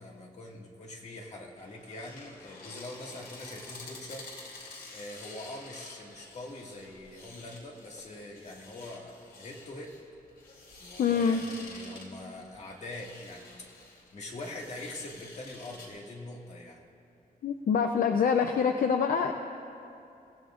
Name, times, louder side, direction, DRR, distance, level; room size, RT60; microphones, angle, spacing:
voice 1, 0.0-4.3 4.9-9.9 10.8-16.9, left 2 dB, 50° left, -1 dB, 1.9 m, -43 dB
sound 1, 1.6-15.9, left 3 dB, 85° left, 3.3 m, -49 dB
voice 2, 11.0-11.4 17.4-19.3, left 6 dB, 65° left, 5 dB, 0.6 m, -25 dB
29.5 x 16.0 x 2.5 m, 2.6 s
wide cardioid pair, 165°, 16 cm